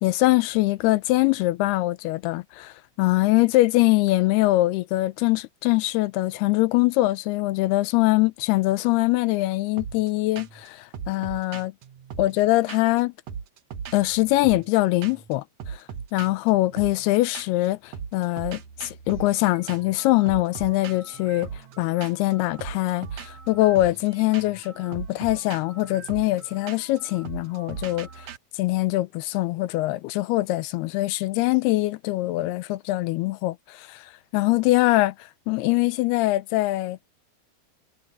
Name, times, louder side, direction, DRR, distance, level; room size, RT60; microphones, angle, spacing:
voice 1, 0.0-11.7 12.2-13.1 13.9-15.8 16.1-28.3 28.5-37.0, left 19 dB, 85° left, 2.7 m, -23 dB
sound 1, 9.8-10.1 10.4-10.7 10.9-13.0 13.3-14.8 15.0-15.3 15.6-17.7 17.9-28.4, right 7 dB, 60° right, 2.0 m, -39 dB
omnidirectional pair, 4.5 m